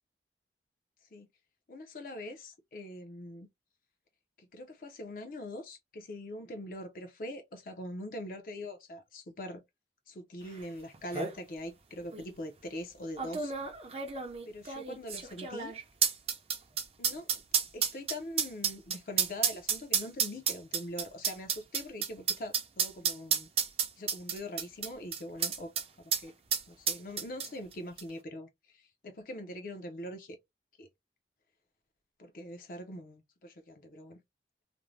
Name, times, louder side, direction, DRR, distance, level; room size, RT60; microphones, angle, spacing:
voice 1, 1.7-3.5 4.4-9.6 10.1-13.5 14.5-15.7 17.0-17.3 17.7-23.5 24.0-25.7 26.0-26.3 26.7-30.4 30.8-30.9 32.2-34.2, left 1 dB, 50° left, 0.5 m, -43 dB
sound 1, 10.6-10.7 10.9-11.4 12.1-12.2 13.2-25.9 26.1-26.2 26.5-27.7 28.0-28.1, right 7 dB, 35° right, 0.5 m, -31 dB
2.6 x 2.0 x 3.1 m
head